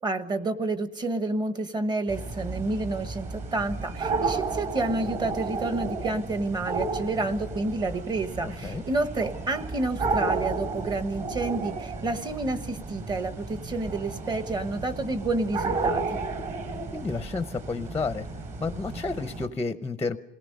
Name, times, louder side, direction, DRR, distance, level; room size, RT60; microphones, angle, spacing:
voice 1, 0.0-16.2, right 2 dB, 20° right, 10 dB, 1.2 m, -29 dB
sound 1, 2.1-19.5, right 3 dB, 40° right, 3.3 m, -33 dB
voice 2, 8.4-8.8 16.9-18.3 18.6-20.2, left 4 dB, 10° left, 9 dB, 0.6 m, -31 dB
28.0 x 18.0 x 5.3 m, 0.90 s
cardioid pair, 170°, 19 cm